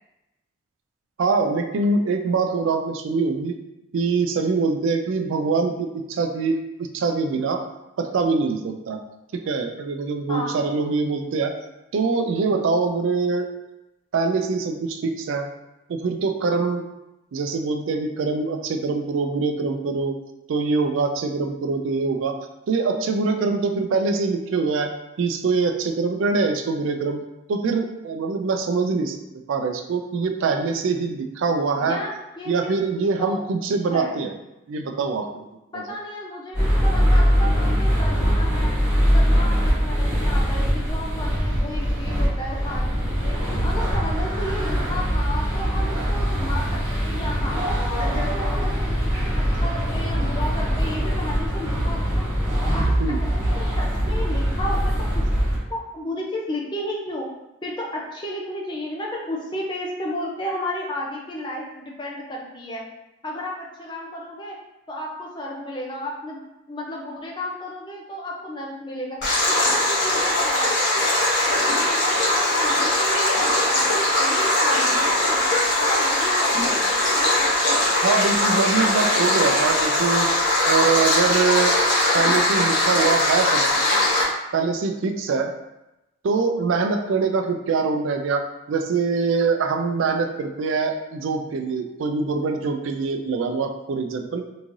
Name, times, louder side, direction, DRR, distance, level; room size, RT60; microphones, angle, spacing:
voice 1, 1.2-3.5 3.9-7.6 8.0-9.0 9.5-11.5 11.9-13.6 14.1-15.5 15.9-16.9 17.3-20.2 20.5-22.4 22.7-24.9 25.2-27.2 27.5-29.2 29.5-32.0 32.5-34.3 34.7-35.5 53.0-53.2 78.0-80.3 80.7-81.7 82.1-83.6 84.5-85.5 86.2-88.4 88.7-94.4, right 4 dB, 70° right, 5 dB, 0.3 m, -23 dB
voice 2, 10.3-10.6 31.7-32.7 33.2-33.4 33.9-34.1 35.7-38.8 39.1-43.3 43.6-47.6 48.0-52.2 52.6-55.1 55.7-57.3 57.6-62.8 63.2-64.6 64.9-66.4 66.7-69.2 69.4-75.4 75.7-77.0, left 1 dB, 20° left, -2 dB, 0.5 m, -33 dB
sound 1, 36.5-55.6, equal, 10° right, 1.5 m, -22 dB
Stream, 69.2-84.2, left 1 dB, 55° left, 1.3 m, -20 dB
3.6 x 3.1 x 2.6 m, 0.94 s
head